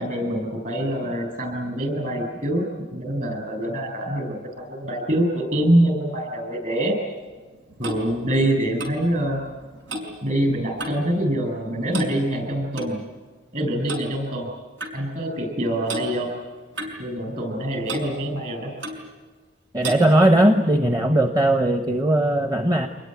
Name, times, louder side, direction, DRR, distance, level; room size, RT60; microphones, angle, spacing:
voice 1, 0.0-2.6 2.9-6.9 7.8-9.4 10.2-13.0 13.5-14.5 14.9-16.3 17.0-18.7, right 1 dB, 40° right, 4 dB, 8.0 m, -25 dB
Clock, 7.3-11.1 11.4-11.7 11.9-12.9 13.9-14.1 14.8-15.0 15.9-16.1 16.8-17.6 17.9-18.1 18.8-19.1 19.8-20.1, right 1 dB, 90° right, 5.5 m, -34 dB
voice 2, 19.7-22.9, right 1 dB, 20° right, 7 dB, 1.1 m, -18 dB
26.0 x 21.0 x 9.3 m, 1.4 s
head